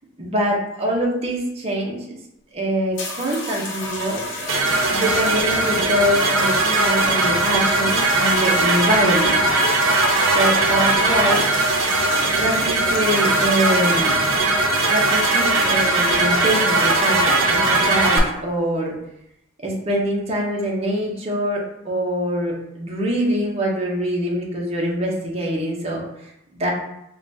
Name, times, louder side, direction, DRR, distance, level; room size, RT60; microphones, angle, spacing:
voice 1, 0.2-2.2 2.5-4.2 4.9-9.4 10.3-11.4 12.4-14.2 14.9-19.0 19.6-26.0 26.5-26.7, equal, 30° right, -2 dB, 0.8 m, -24 dB
sound 1, 3.0-17.0 17.9-18.2, left 2 dB, 65° left, 0.8 m, -31 dB
sound 2, 4.5-18.2, right 2 dB, 85° right, 0.6 m, -19 dB
4.8 x 2.3 x 2.7 m, 0.82 s
head